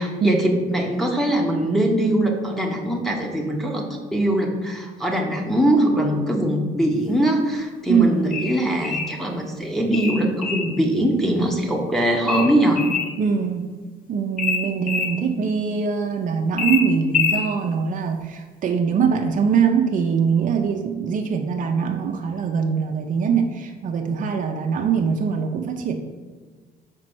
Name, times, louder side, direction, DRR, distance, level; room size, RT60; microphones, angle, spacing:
voice 1, 0.0-3.8 4.1-12.8, right 1 dB, ahead, 1 dB, 1.1 m, -22 dB
sound 1, 8.3-9.2 9.9-10.7 12.3-13.1 14.4-15.1 16.6-17.5, left 6 dB, 55° left, 1.2 m, -25 dB
voice 2, 13.2-13.7 14.1-25.9, right 6 dB, 50° right, 3 dB, 0.7 m, -22 dB
5.2 x 4.3 x 6.2 m, 1.4 s
cardioid pair, 110°, 17 cm